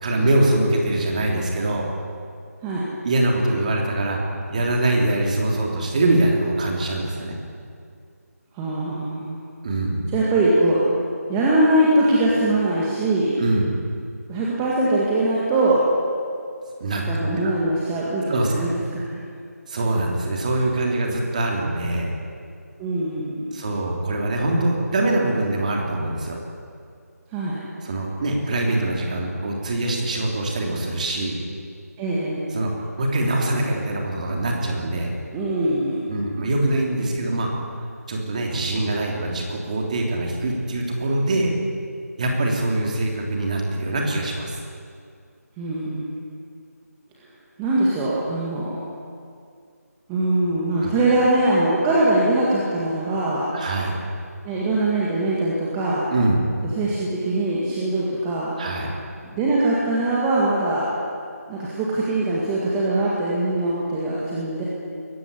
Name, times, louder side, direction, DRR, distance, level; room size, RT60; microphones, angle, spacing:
voice 1, 0.0-1.9 3.0-4.2 4.5-7.4 9.6-10.0 13.4-13.7 16.8-17.0 17.4-17.5 18.3-18.5 19.7-22.1 23.5-26.4 27.8-31.4 32.5-35.1 36.1-37.5 38.1-41.5 42.2-44.6 50.8-50.9 53.5-54.0 56.1-56.4 58.6-58.9, right 2 dB, 25° right, 0 dB, 3.3 m, -23 dB
voice 2, 8.5-9.4 10.1-10.8 11.3-13.4 14.3-15.8 16.9-18.7 19.1-19.2 22.8-23.4 27.3-27.6 32.0-32.5 35.3-36.1 45.6-46.2 47.6-48.8 50.1-53.4 54.4-56.0 56.8-58.5 59.3-60.9 61.5-64.6, right 2 dB, 10° right, -6 dB, 1.9 m, -22 dB
21.5 x 16.0 x 9.9 m, 2.3 s
figure-of-eight pair, 170°, 9 cm